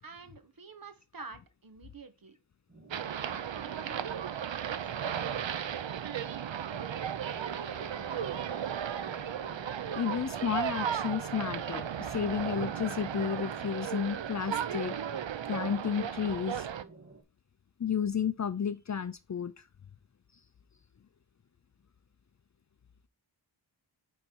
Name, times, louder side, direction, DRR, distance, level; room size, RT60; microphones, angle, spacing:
voice 1, 0.0-2.4 3.2-5.2, right 4 dB, 50° right, 1.3 m, -49 dB
sound 1, 2.7-17.2, right 3 dB, 30° right, 1.8 m, -57 dB
sound 2, 2.9-16.8, right 9 dB, 75° right, 0.7 m, -35 dB
Bowed string instrument, 7.2-14.0, left 10 dB, 75° left, 1.1 m, -55 dB
voice 2, 9.9-14.9 15.5-16.7 17.8-19.5, left 7 dB, 40° left, 0.5 m, -32 dB
9.0 x 4.2 x 4.5 m
wide cardioid pair, 110°, 46 cm